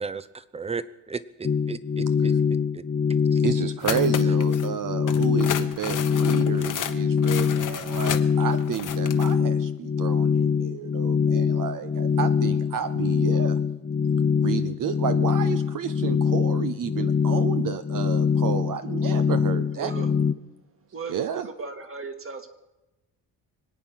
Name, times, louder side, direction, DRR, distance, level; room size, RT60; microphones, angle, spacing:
voice 1, 0.5-2.3 2.7-2.8 3.3-3.4, right 5 dB, 15° right, 15 dB, 0.7 m, -34 dB
sound 1, 1.4-20.3, left 6 dB, 25° left, 0.5 m, -23 dB
voice 2, 3.4-13.6 14.3-19.9 21.1-21.5, right 9 dB, 50° right, 11 dB, 0.7 m, -31 dB
sound 2, 3.8-4.7 5.1-9.3, left 9 dB, 45° left, 1.1 m, -33 dB
voice 3, 19.8-20.1 20.9-22.5, right 4 dB, 30° right, 6 dB, 1.9 m, -36 dB
25.5 x 8.9 x 5.7 m, 1.0 s
cardioid pair, 120°, 42 cm